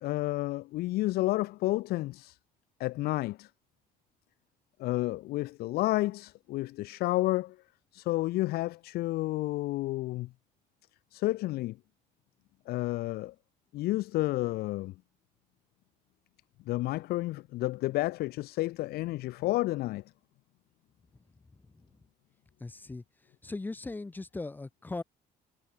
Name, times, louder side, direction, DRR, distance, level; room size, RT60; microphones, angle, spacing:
voice 1, 0.0-2.4 2.8-3.5 4.8-7.6 7.9-10.3 11.1-11.8 12.7-13.3 13.7-14.9 16.7-20.0, left 18 dB, 75° left, 1.2 m, -30 dB
voice 2, 21.5-21.9 22.6-23.0 23.4-25.0, left 3 dB, 10° left, 2.0 m, -39 dB
cardioid pair, 165°, 16 cm